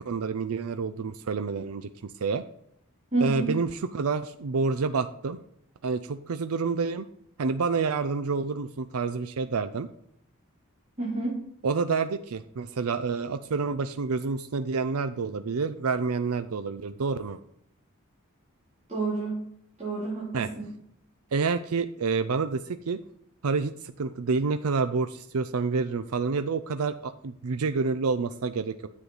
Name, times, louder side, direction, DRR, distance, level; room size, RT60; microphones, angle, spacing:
voice 1, 0.0-2.4 3.2-5.4 5.8-7.1 7.4-9.9 11.6-17.4 20.3-20.5 21.3-23.0 23.4-23.7 24.0-28.8, right 4 dB, 80° right, 10 dB, 0.5 m, -28 dB
voice 2, 3.1-3.5 11.0-11.3 18.9-19.4 19.8-20.7, right 3 dB, 30° right, -9 dB, 3.7 m, -29 dB
9.9 x 7.7 x 4.0 m, 0.71 s
head